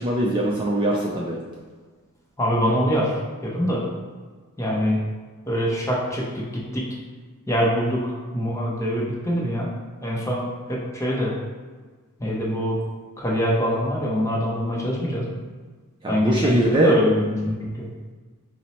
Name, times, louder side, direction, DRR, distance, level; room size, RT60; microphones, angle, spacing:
voice 1, 0.0-1.4 16.0-16.9, right 1 dB, 20° right, -3 dB, 0.3 m, -21 dB
voice 2, 2.4-3.1 3.4-3.9 4.6-5.0 5.5-6.9 7.5-9.7 10.0-11.3 12.2-12.8 13.2-15.4 16.1-17.9, equal, 15° left, -4 dB, 0.6 m, -24 dB
4.3 x 2.0 x 4.1 m, 1.4 s
head